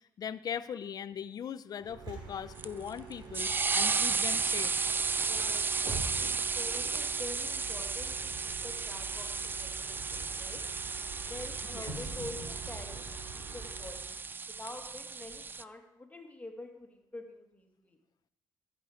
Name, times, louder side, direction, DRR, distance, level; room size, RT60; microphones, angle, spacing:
voice 1, 0.0-4.7 11.7-11.9, left 8 dB, 50° left, 15 dB, 0.4 m, -40 dB
Bus, 1.8-14.2, right 4 dB, 65° right, 2.8 m, -45 dB
sound 1, 2.6-15.6, right 4 dB, 25° right, 0.3 m, -34 dB
voice 2, 5.2-10.6 11.3-14.1 14.6-18.0, left 2 dB, 20° left, 3 dB, 1.8 m, -47 dB
13.5 x 6.6 x 5.0 m, 0.85 s
cardioid pair, 90°, 8 cm